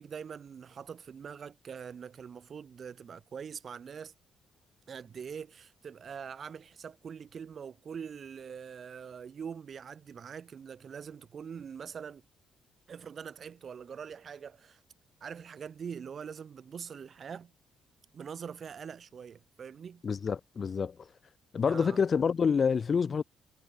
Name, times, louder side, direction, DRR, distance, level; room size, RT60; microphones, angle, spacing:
voice 1, 0.0-4.1 4.9-12.2 12.9-14.8 15.2-17.5 18.1-20.0 21.6-22.0, right 7 dB, 50° right, 6.6 m, -43 dB
voice 2, 20.0-20.9 21.5-23.2, left 6 dB, 45° left, 2.8 m, -27 dB
cardioid pair, 90°, 0 cm